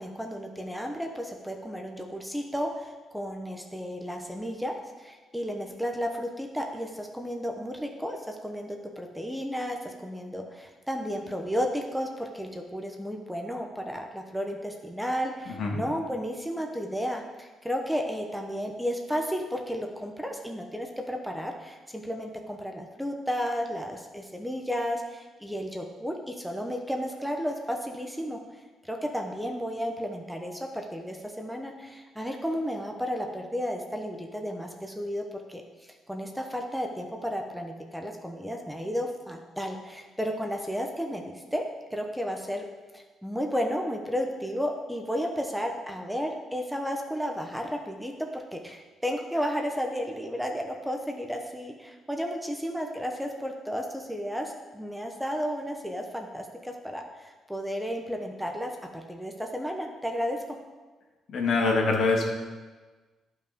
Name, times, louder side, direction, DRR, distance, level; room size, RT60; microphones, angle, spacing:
voice 1, 0.0-28.4 28.8-41.6 41.9-42.6 42.9-60.6, equal, ahead, 2 dB, 1.0 m, -33 dB
voice 2, 61.3-62.3, left 3 dB, 65° left, -1 dB, 2.3 m, -24 dB
11.5 x 5.7 x 5.2 m, 1.3 s
cardioid pair, 90°, 0 cm